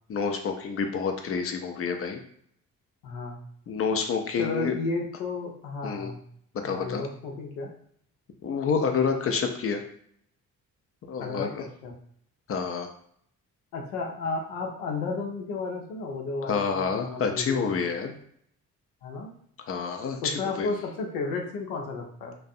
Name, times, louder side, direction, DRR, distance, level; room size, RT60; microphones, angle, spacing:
voice 1, 0.1-2.2 3.7-4.7 5.8-6.1 6.6-7.1 8.4-9.8 11.1-11.5 12.5-12.9 16.5-18.1 19.7-20.7, left 5 dB, 35° left, 5 dB, 0.4 m, -28 dB
voice 2, 3.0-3.4 4.4-6.2 6.6-7.7 11.2-11.9 13.7-17.8 19.0-19.3 20.2-22.4, left 3 dB, 75° left, 1 dB, 0.6 m, -33 dB
2.5 x 2.1 x 2.4 m, 0.64 s
hypercardioid pair, 40°, 44 cm